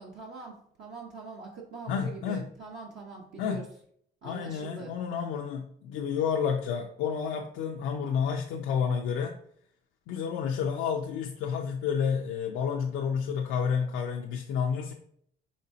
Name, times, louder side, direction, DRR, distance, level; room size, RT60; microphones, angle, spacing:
voice 1, 0.0-3.7 4.2-5.0, right 4 dB, 65° right, -2 dB, 0.8 m, -43 dB
voice 2, 1.9-2.5 3.4-3.6 4.2-9.4 10.1-14.9, left 7 dB, 90° left, 1 dB, 0.5 m, -30 dB
5.1 x 3.4 x 2.7 m, 0.64 s
cardioid pair, 90°, 20 cm